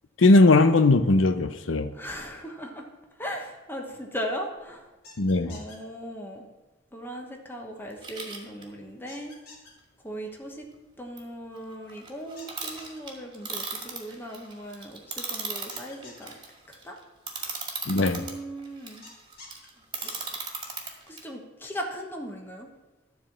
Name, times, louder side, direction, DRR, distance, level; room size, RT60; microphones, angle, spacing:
voice 1, 0.2-1.9 5.2-5.6 17.9-18.2, left 2 dB, 85° left, 10 dB, 0.7 m, -19 dB
voice 2, 1.9-2.9 3.2-4.9 5.4-6.5 6.9-9.4 10.0-10.7 11.0-16.4 16.7-17.0 17.4-17.6 17.9-19.1 19.9-20.4 21.1-22.7, equal, 10° left, 1 dB, 1.1 m, -38 dB
sound 1, 5.0-5.8 9.1-9.7 12.4-13.0 15.7-16.3 19.0-19.7, left 3 dB, 55° left, 3.5 m, -48 dB
sound 2, 8.0-8.6 11.2-11.3 11.5-18.3 18.6-21.2, right 4 dB, 25° right, 2.1 m, -37 dB
13.5 x 4.7 x 7.2 m, 1.1 s
head